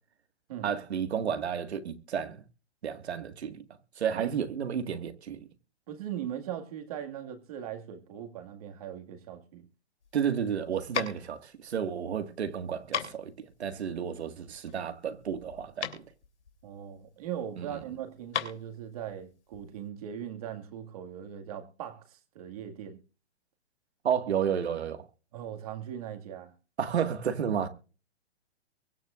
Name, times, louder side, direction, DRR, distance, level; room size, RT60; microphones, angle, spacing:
voice 1, 0.6-2.4 2.8-3.6 4.0-5.5 10.1-16.0 17.6-17.8 24.0-25.1 26.8-27.7, right 8 dB, 70° right, 1.9 m, -32 dB
voice 2, 5.9-9.7 16.6-23.0 25.3-26.5, right 10 dB, 35° right, 2.0 m, -39 dB
sound 1, 10.0-19.8, left 8 dB, 90° left, 3.2 m, -39 dB
23.5 x 9.2 x 2.5 m
hypercardioid pair, 170°, 33 cm